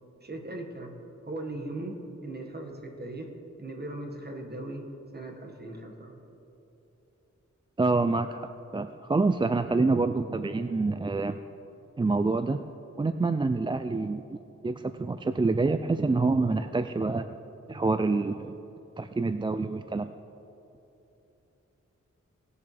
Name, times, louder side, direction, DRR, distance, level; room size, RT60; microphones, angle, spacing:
voice 1, 0.2-1.0 1.2-3.3 3.6-4.8 5.1-6.1, right 2 dB, 35° right, 2 dB, 1.7 m, -38 dB
voice 2, 7.8-11.4 12.0-12.6 13.0-14.4 14.6-17.3 17.7-18.5 19.0-20.1, right 3 dB, 15° right, 9 dB, 0.3 m, -27 dB
19.0 x 7.0 x 3.4 m, 3.0 s
cardioid pair, 60°, 30 cm